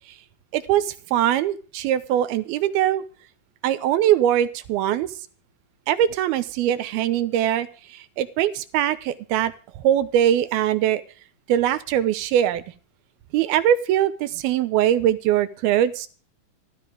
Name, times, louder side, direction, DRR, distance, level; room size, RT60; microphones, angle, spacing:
voice 1, 0.5-3.0 3.6-5.1 5.9-11.0 11.5-12.6 13.3-16.1, right 11 dB, 90° right, 13 dB, 2.8 m, -22 dB
15.0 x 13.0 x 5.0 m, 0.39 s
omnidirectional pair, 4.3 m